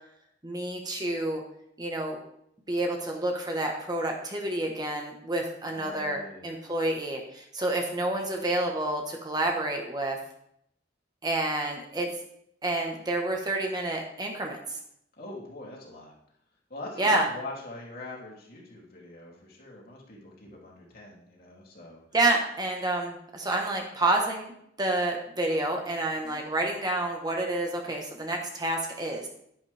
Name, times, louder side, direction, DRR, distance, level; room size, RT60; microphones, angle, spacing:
voice 1, 0.4-1.4 1.8-2.2 2.7-10.2 11.2-12.1 12.6-14.6 17.0-17.3 22.1-29.3, right 2 dB, 20° right, 1 dB, 1.3 m, -29 dB
voice 2, 5.7-6.5 15.2-16.1 16.7-22.0 26.2-26.5, left 2 dB, 55° left, -3 dB, 3.1 m, -43 dB
10.5 x 10.5 x 3.5 m, 0.71 s
head